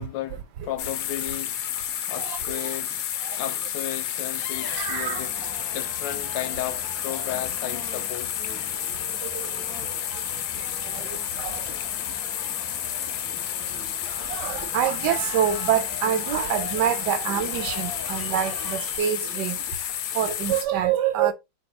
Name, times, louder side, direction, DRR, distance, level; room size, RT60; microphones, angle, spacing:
voice 1, 0.0-1.6 2.1-3.0 3.3-8.4, left 12 dB, 90° left, 1.4 m, -34 dB
sound 1, 0.8-20.6, left 10 dB, 70° left, 1.1 m, -31 dB
voice 2, 2.2-2.7 3.3-3.4 4.6-5.5 8.7-11.9 13.4-19.7 20.1-21.3, right 10 dB, 75° right, 1.2 m, -28 dB
sound 2, 4.5-19.0, left 3 dB, 25° left, 0.5 m, -42 dB
4.2 x 2.3 x 4.5 m
omnidirectional pair, 1.9 m